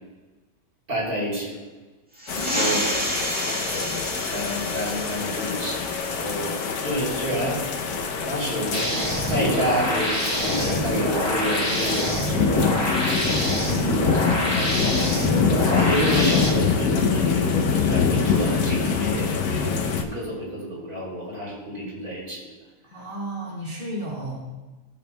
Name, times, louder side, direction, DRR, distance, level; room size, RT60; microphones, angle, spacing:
voice 1, 0.9-1.7 2.4-2.8 3.6-3.9 4.3-5.8 6.1-7.6 8.2-8.9 9.3-13.2 13.8-14.0 14.5-22.5, equal, 70° right, -6 dB, 3.8 m, -29 dB
sound 1, 2.2-7.3, equal, 5° right, 1.8 m, -31 dB
sound 2, 2.3-20.0, left 5 dB, 75° left, 1.3 m, -25 dB
voice 2, 2.3-2.8 13.7-14.1 22.8-24.5, right 1 dB, 30° right, -6 dB, 2.2 m, -33 dB
sound 3, 8.7-16.5, equal, 15° left, 1.7 m, -26 dB
17.5 x 6.9 x 2.2 m, 1.2 s
omnidirectional pair, 1.7 m